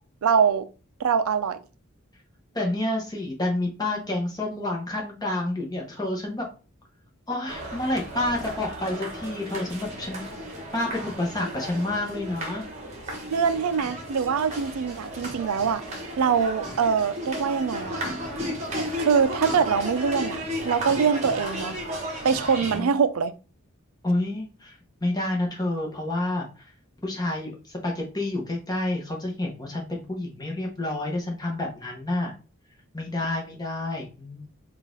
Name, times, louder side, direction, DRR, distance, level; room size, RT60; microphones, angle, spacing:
voice 1, 0.2-0.7 1.0-1.6 13.3-15.8 16.2-18.0 19.0-21.8 22.2-23.3, right 6 dB, 85° right, 0.4 m, -23 dB
voice 2, 2.5-6.4 7.3-10.2 10.7-12.6 22.6-23.0 24.0-26.7 27.0-32.3 32.9-34.5, left 1 dB, 20° left, 0.9 m, -29 dB
sound 1, 7.5-22.8, equal, 30° right, 1.1 m, -34 dB
3.9 x 2.4 x 3.8 m
head